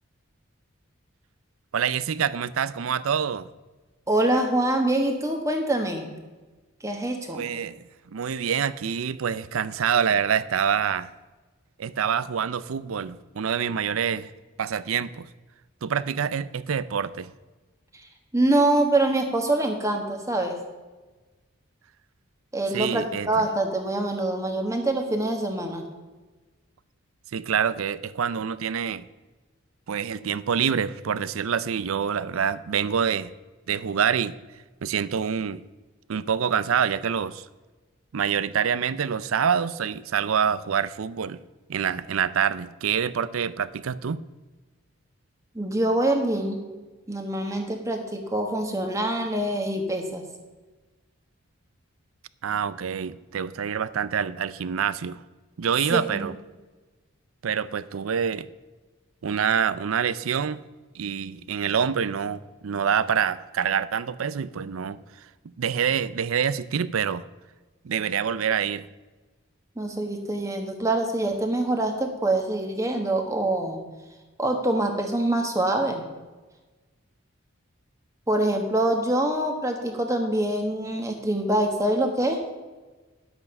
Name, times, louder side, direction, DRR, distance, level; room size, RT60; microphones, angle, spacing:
voice 1, 1.7-3.5 7.3-7.8 8.1-11.1 11.8-14.3 14.6-15.3 15.8-17.3 22.7-23.5 27.3-29.0 29.9-33.3 33.7-34.3 34.8-35.6 36.1-37.5 38.1-41.4 41.7-44.2 52.4-55.2 55.6-56.3 57.4-58.5 59.2-60.6 60.9-67.3 67.8-68.9, right 7 dB, 85° right, 17 dB, 0.5 m, -26 dB
voice 2, 4.1-6.1 6.8-7.4 18.3-20.6 22.5-25.8 45.5-46.7 47.1-50.2 55.9-56.3 69.8-73.8 74.4-76.1 78.3-82.4, right 1 dB, 15° right, 3 dB, 1.3 m, -25 dB
11.0 x 8.1 x 5.4 m, 1.2 s
head